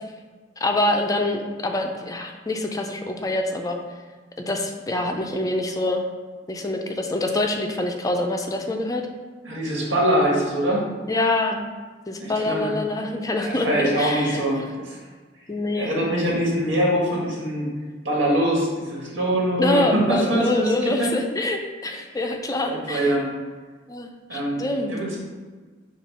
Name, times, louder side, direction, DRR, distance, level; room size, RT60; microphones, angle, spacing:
voice 1, 0.6-3.8 4.5-6.0 6.5-9.0 11.1-11.6 12.1-14.4 15.5-15.9 19.6-23.2 23.9-25.0, left 2 dB, 20° left, 4 dB, 0.4 m, -25 dB
voice 2, 9.4-10.9 12.2-12.7 13.4-15.0 15.8-17.7 18.0-21.1 22.7-23.3 24.3-24.6 24.9-25.2, right 1 dB, 75° right, -3 dB, 1.8 m, -23 dB
7.2 x 2.4 x 5.4 m, 1.4 s
head